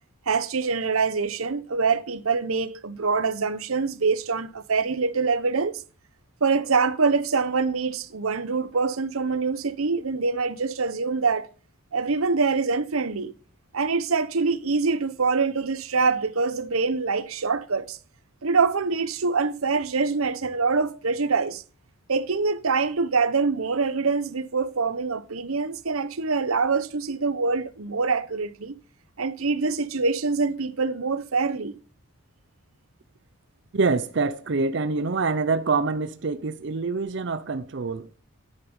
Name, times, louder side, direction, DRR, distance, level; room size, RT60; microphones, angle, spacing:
voice 1, 0.3-5.7 6.4-11.5 11.9-13.3 13.7-18.0 18.4-21.6 22.1-28.7 29.2-31.8, right 4 dB, 85° right, 0.9 m, -25 dB
voice 2, 33.7-38.1, right 4 dB, 55° right, 0.6 m, -25 dB
10.0 x 8.5 x 5.4 m
head